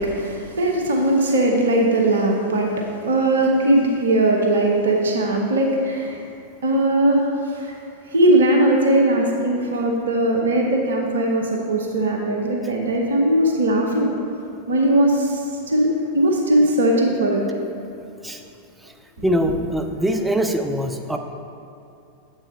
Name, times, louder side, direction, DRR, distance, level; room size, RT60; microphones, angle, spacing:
voice 1, 0.0-2.7 3.0-6.2 6.6-7.7 8.1-14.1 14.7-17.4 19.2-19.3, right 1 dB, 65° right, 1 dB, 0.8 m, -19 dB
voice 2, 19.2-21.2, equal, 5° right, 4 dB, 0.5 m, -22 dB
7.5 x 4.9 x 4.4 m, 2.7 s
figure-of-eight pair, 90°, 0 cm